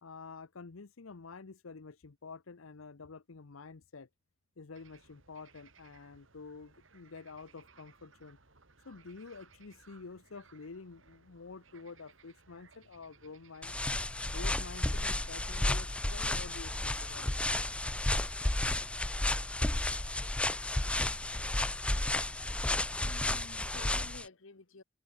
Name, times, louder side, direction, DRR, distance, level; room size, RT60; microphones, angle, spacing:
voice 1, 0.0-4.1 4.6-8.4 8.8-17.5, left 4 dB, 85° left, 0.8 m, -49 dB
sound 1, 4.7-22.3, right 4 dB, 65° right, 3.4 m, -62 dB
sound 2, 13.6-24.2, left 1 dB, 5° left, 0.3 m, -32 dB
voice 2, 23.0-24.8, left 3 dB, 70° left, 1.3 m, -51 dB
head